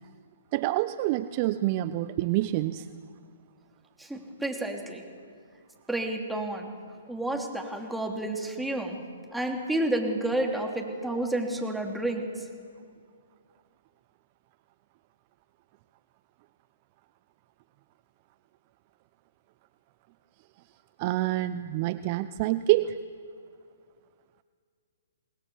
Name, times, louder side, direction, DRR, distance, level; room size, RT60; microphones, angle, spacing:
voice 1, 0.5-2.9 21.0-23.0, right 15 dB, 35° right, 14 dB, 0.7 m, -27 dB
voice 2, 4.0-5.0 5.9-6.7 7.1-9.0 9.3-12.5, right 1 dB, 5° right, 1 dB, 3.1 m, -30 dB
26.5 x 19.5 x 7.2 m, 2.2 s
figure-of-eight pair, 130°, 0 cm